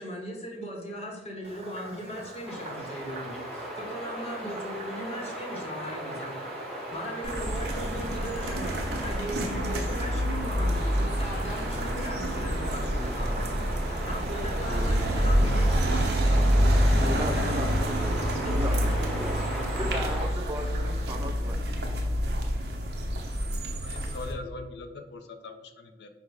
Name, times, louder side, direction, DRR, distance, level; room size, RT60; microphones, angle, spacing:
voice 1, 0.0-6.4 6.9-18.1 18.4-20.1, equal, 35° left, 0 dB, 0.8 m, -38 dB
Frog, 1.4-21.1, right 2 dB, 35° right, 0.8 m, -45 dB
sound 1, 2.5-20.3, equal, ahead, 1.0 m, -38 dB
sound 2, 7.2-24.3, equal, 65° right, 0.7 m, -27 dB
voice 2, 17.0-17.7 18.4-18.8 19.1-19.4 19.7-22.5, equal, 20° right, 3 dB, 0.3 m, -36 dB
voice 3, 23.8-26.1, left 3 dB, 70° left, 7 dB, 0.4 m, -41 dB
5.2 x 2.1 x 4.7 m, 1.1 s
head